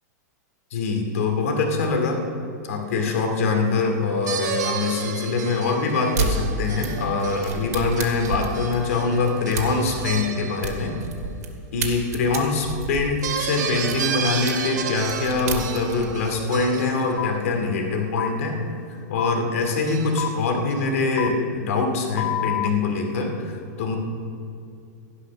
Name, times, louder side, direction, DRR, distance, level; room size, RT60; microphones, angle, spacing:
voice 1, 0.7-2.2 2.6-11.0 11.7-18.6 19.1-24.0, left 4 dB, 50° left, 3 dB, 2.5 m, -24 dB
sound 1, 2.9-3.2 4.3-11.3 13.2-17.4 19.7-20.3 20.7-20.8, right 6 dB, 85° right, 1.6 m, -32 dB
sound 2, 6.1-6.3 6.8-11.5 11.8-14.0 14.5-14.6 14.9-16.1, right 6 dB, 65° right, 2.5 m, -30 dB
sound 3, 17.2-17.3 18.2-18.3 19.2-19.3 20.2-20.3 21.2-21.3 22.2-22.7, left 12 dB, 80° left, 0.7 m, -27 dB
14.0 x 11.5 x 6.3 m, 2.5 s
supercardioid pair, 180°, 10 cm